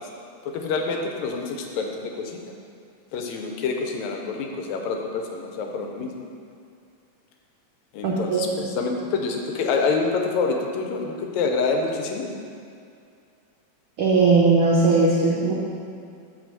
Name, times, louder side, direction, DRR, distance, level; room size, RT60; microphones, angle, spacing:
voice 1, 0.4-2.4 3.1-6.3 7.9-12.3, left 4 dB, 80° left, 2 dB, 2.0 m, -27 dB
voice 2, 8.0-8.6 14.0-15.5, right 3 dB, 80° right, -4 dB, 1.1 m, -19 dB
6.2 x 4.7 x 6.6 m, 2.4 s
omnidirectional pair, 3.4 m